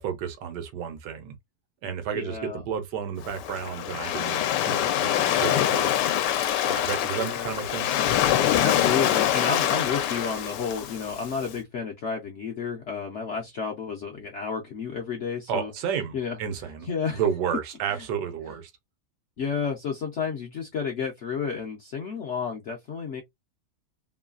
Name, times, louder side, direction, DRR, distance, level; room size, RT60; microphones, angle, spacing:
voice 1, 0.0-1.3 1.8-6.0 6.6-7.9 15.5-16.9 17.1-18.7, right 8 dB, 80° right, 1.3 m, -31 dB
voice 2, 2.1-2.6 7.2-7.6 8.6-15.7 16.1-16.4 16.8-17.2 17.9-18.0 19.4-23.2, left 6 dB, 65° left, 0.7 m, -31 dB
Waves surf, 3.2-11.4, left 11 dB, 80° left, 1.2 m, -25 dB
3.1 x 2.3 x 2.3 m
omnidirectional pair, 1.8 m